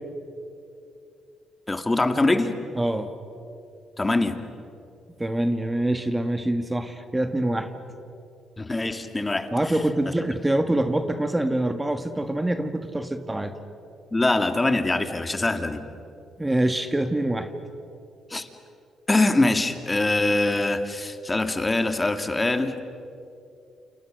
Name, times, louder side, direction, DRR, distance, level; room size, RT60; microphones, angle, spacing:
voice 1, 1.7-2.5 4.0-4.4 8.6-9.5 14.1-15.8 18.3-18.5 19.1-22.7, left 2 dB, 20° left, 7 dB, 2.3 m, -23 dB
voice 2, 2.7-3.1 5.2-7.7 9.5-13.5 16.4-17.5, right 1 dB, 10° right, 8 dB, 1.7 m, -25 dB
29.5 x 28.5 x 6.5 m, 2.6 s
cardioid pair, 90°, 0 cm